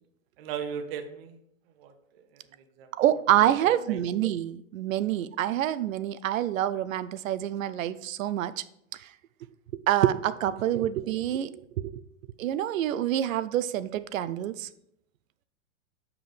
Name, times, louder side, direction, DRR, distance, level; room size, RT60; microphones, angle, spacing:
voice 1, 0.4-1.4 1.8-1.9 2.3-2.4 2.8-2.9 3.6-4.0, right 7 dB, 45° right, 8 dB, 0.8 m, -36 dB
voice 2, 3.0-8.6 9.0-9.1 9.9-12.0 12.4-14.7, right 12 dB, 90° right, 15 dB, 0.6 m, -27 dB
7.0 x 5.9 x 3.3 m, 0.76 s
supercardioid pair, 150°, 39 cm